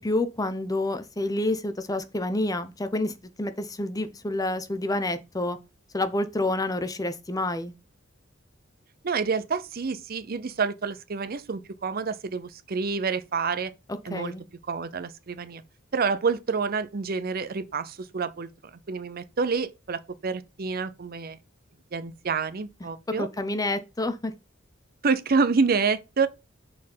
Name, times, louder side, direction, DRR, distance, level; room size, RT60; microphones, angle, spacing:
voice 1, 0.0-5.6 5.9-7.7 14.1-14.4 23.2-24.3, left 2 dB, 20° left, 0.7 m, -28 dB
voice 2, 9.0-13.7 14.0-14.3 14.7-15.6 15.9-21.4 21.9-23.3 25.0-26.3, right 4 dB, 50° right, 0.6 m, -28 dB
6.3 x 4.4 x 5.5 m
head